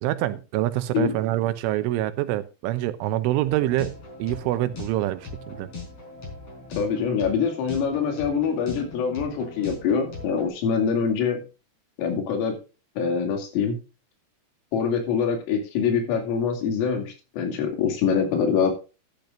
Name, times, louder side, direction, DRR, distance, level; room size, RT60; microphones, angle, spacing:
voice 1, 0.0-5.7, right 14 dB, 80° right, 13 dB, 3.1 m, -26 dB
sound 1, 3.4-10.5, left 3 dB, 30° left, 4.8 m, -40 dB
voice 2, 6.7-11.4 12.0-12.6 13.0-13.8 14.7-18.7, left 6 dB, 85° left, 5 dB, 5.1 m, -24 dB
12.0 x 12.0 x 2.5 m, 0.31 s
omnidirectional pair, 5.8 m